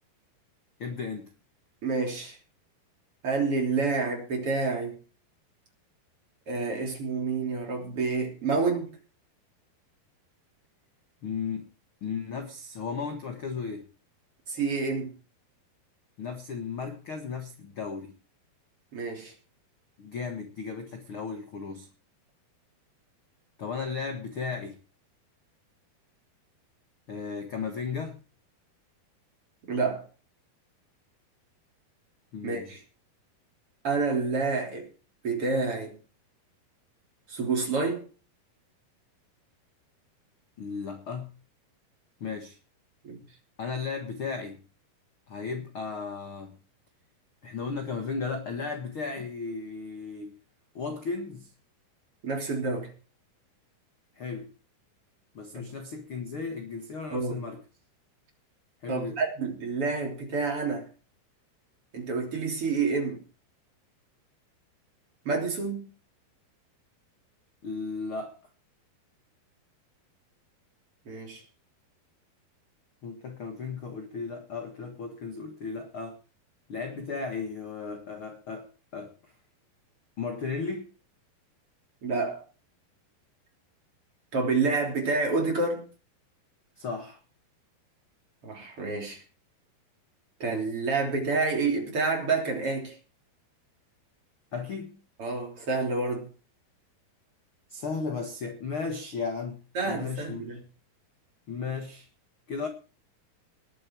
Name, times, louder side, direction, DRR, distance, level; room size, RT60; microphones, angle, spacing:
voice 1, 0.8-1.3 11.2-11.7 12.0-13.9 16.2-18.2 20.0-21.9 23.6-24.8 27.1-28.2 32.3-32.7 40.6-41.3 42.2-42.6 43.6-44.6 45.3-46.6 47.4-50.4 50.7-51.5 54.2-54.5 55.3-57.6 58.8-59.2 67.6-68.4 73.0-76.2 76.7-79.1 80.2-80.9 86.8-87.2 94.5-95.0 97.7-100.6 101.5-102.1 102.5-102.7, left 5 dB, 50° left, 1.7 m, -35 dB
voice 2, 1.8-2.4 3.2-5.0 6.5-9.0 14.5-15.1 18.9-19.3 29.7-30.1 32.4-32.8 33.8-34.9 35.2-36.0 37.3-38.1 43.0-43.2 52.2-52.9 55.5-55.7 57.1-57.4 58.9-60.9 61.9-63.2 65.3-65.9 71.1-71.4 82.0-82.4 84.3-85.9 88.4-89.2 90.4-93.0 95.2-96.3 99.7-100.6, right 4 dB, 35° right, 4.0 m, -28 dB
20.0 x 8.7 x 4.6 m
omnidirectional pair, 4.6 m